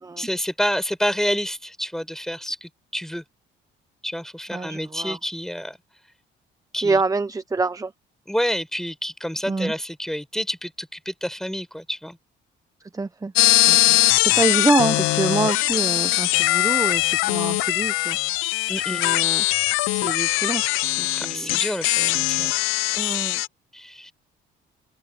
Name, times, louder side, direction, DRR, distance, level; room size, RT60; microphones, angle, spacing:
voice 1, 0.2-3.2 4.0-5.8 6.7-7.0 8.3-12.2 13.9-14.0 18.7-19.0 21.2-22.5 23.7-24.1, equal, ahead, 7.9 m, -28 dB
voice 2, 4.5-5.2 6.8-7.9 9.5-9.7 12.9-13.3 13.7-18.2 18.9-19.4 19.9-21.6 22.9-23.4, right 3 dB, 15° right, 0.9 m, -26 dB
sound 1, 13.4-23.5, left 20 dB, 80° left, 0.5 m, -21 dB
open air
supercardioid pair, 80°, 21 cm